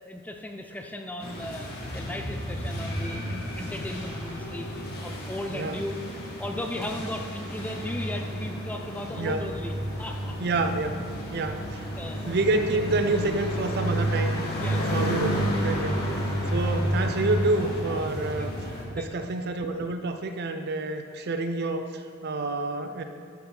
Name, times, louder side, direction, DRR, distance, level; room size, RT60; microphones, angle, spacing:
voice 1, 0.0-4.7 5.0-6.0 6.4-9.7 10.0-10.4 12.0-12.4 14.6-15.0 18.4-18.6 19.0-19.1, left 1 dB, 5° left, 4 dB, 0.5 m, -36 dB
sound 1, 1.2-18.8, equal, 45° left, 1.6 m, -31 dB
voice 2, 9.2-9.5 10.4-11.0 11.3-11.9 12.3-14.3 14.9-18.5 18.9-23.0, right 2 dB, 50° right, 7 dB, 0.6 m, -28 dB
11.5 x 5.5 x 4.4 m, 2.3 s
head